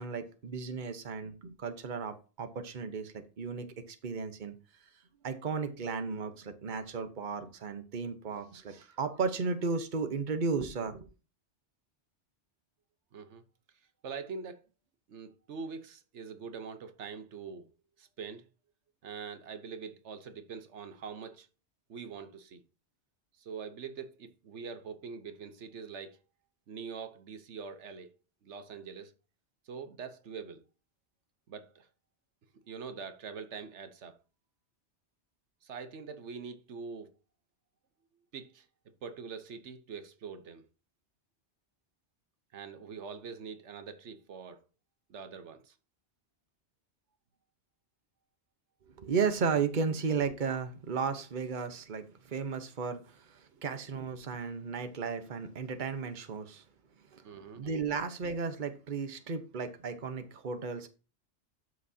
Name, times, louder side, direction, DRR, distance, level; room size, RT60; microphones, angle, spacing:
voice 1, 0.0-4.5 5.2-11.1 49.0-56.6 57.1-57.2 57.6-60.9, right 5 dB, 45° right, 1.1 m, -34 dB
voice 2, 13.1-13.4 14.0-14.6 15.1-17.7 18.0-18.5 19.0-21.5 21.9-22.6 23.4-26.2 26.7-28.1 28.4-29.1 29.7-30.6 31.5-31.9 32.7-34.2 35.6-37.1 38.3-38.7 39.0-40.7 42.5-44.6 45.1-45.7 53.5-53.6 57.2-57.6, right 5 dB, 90° right, 1.3 m, -44 dB
12.0 x 6.3 x 2.8 m
omnidirectional pair, 1.1 m